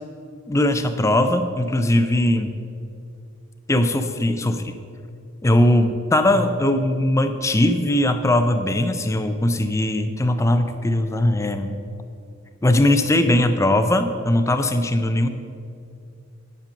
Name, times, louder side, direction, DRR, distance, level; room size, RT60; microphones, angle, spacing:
voice 1, 0.5-2.5 3.7-4.8 5.4-11.8 12.6-15.3, left 1 dB, 15° left, 8 dB, 0.4 m, -20 dB
10.0 x 5.3 x 6.3 m, 2.4 s
head